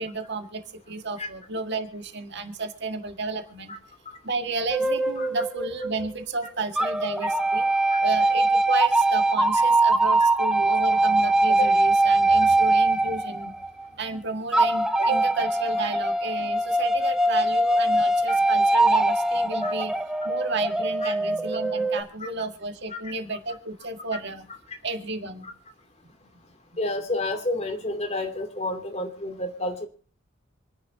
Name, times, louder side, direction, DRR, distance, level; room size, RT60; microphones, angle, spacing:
voice 1, 0.0-3.7 4.2-7.7 8.0-13.6 14.0-19.9 20.2-24.5 24.8-25.5, right 3 dB, 55° right, 5 dB, 1.8 m, -32 dB
sound 1, 4.7-6.3 6.8-13.9 14.5-22.0, right 2 dB, 5° right, 0.7 m, -22 dB
voice 2, 26.8-29.9, left 2 dB, 30° left, 5 dB, 2.7 m, -30 dB
26.5 x 11.0 x 2.8 m, 0.40 s
head